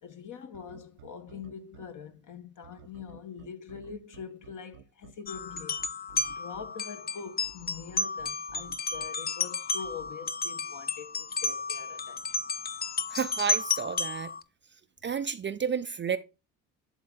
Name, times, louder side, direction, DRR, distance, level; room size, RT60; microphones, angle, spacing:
voice 1, 0.0-5.8 6.3-12.3, left 6 dB, 50° left, 1.4 m, -44 dB
sound 1, 0.5-1.9 2.6-6.7 7.4-9.1 9.8-10.1, right 10 dB, 80° right, 0.8 m, -52 dB
sound 2, 5.3-14.4, left 4 dB, 25° left, 0.5 m, -32 dB
voice 2, 13.1-14.3 15.0-16.2, right 7 dB, 30° right, 0.5 m, -31 dB
10.5 x 3.7 x 3.9 m
hypercardioid pair, 65°, 40 cm